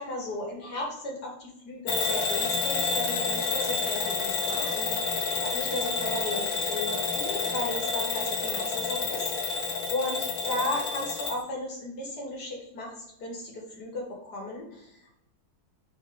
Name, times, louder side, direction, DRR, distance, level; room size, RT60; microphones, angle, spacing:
voice 1, 0.0-9.6 9.9-10.2 10.5-15.1, left 1 dB, 60° left, -2 dB, 2.4 m, -35 dB
Bell / Alarm, 1.9-11.4, left 4 dB, 90° left, 1.8 m, -29 dB
5.1 x 4.1 x 5.2 m, 0.80 s
omnidirectional pair, 2.1 m